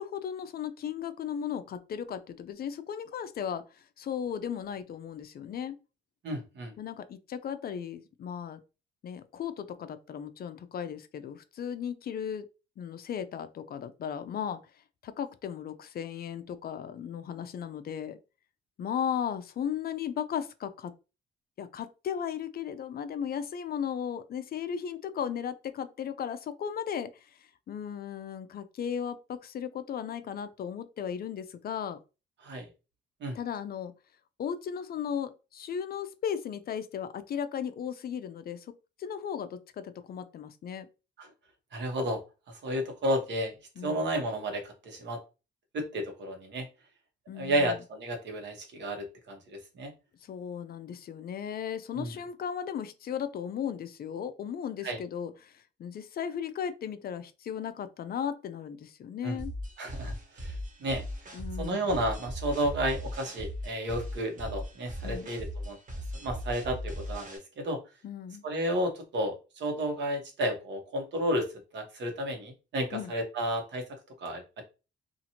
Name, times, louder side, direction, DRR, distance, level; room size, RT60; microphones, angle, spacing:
voice 1, 0.0-5.8 6.8-8.6 9.0-12.5 12.8-14.6 15.0-18.2 18.8-20.9 21.6-27.3 27.7-32.0 33.3-33.9 34.4-40.9 43.8-44.0 47.3-47.7 50.2-59.5 61.3-61.9 65.0-65.3 68.0-68.4 72.9-73.1, left 8 dB, 50° left, 0.4 m, -36 dB
voice 2, 6.2-6.7 32.4-32.7 33.2-33.3 41.2-41.3 41.7-42.2 42.6-43.5 43.8-45.2 45.7-46.7 47.4-49.9 51.9-52.1 54.8-55.0 59.2-59.4 59.8-61.0 61.6-65.8 66.2-67.8 68.4-71.4 71.7-73.8 74.2-74.6, right 1 dB, 65° right, 1.1 m, -32 dB
sound 1, 59.4-67.4, equal, 40° right, 1.1 m, -38 dB
2.8 x 2.5 x 2.8 m
cardioid pair, 90°, 20 cm